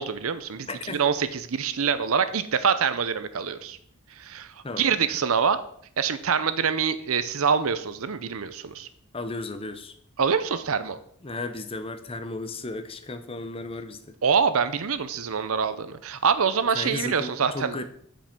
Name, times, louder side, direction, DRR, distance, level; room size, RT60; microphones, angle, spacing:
voice 1, 0.0-3.8 4.2-5.6 6.0-8.9 10.2-11.0 14.2-17.8, right 6 dB, 70° right, 12 dB, 0.6 m, -25 dB
voice 2, 0.7-1.0 4.6-4.9 9.1-9.9 11.2-14.1 16.7-17.8, left 2 dB, 25° left, 9 dB, 0.7 m, -34 dB
8.8 x 5.3 x 5.9 m, 0.65 s
head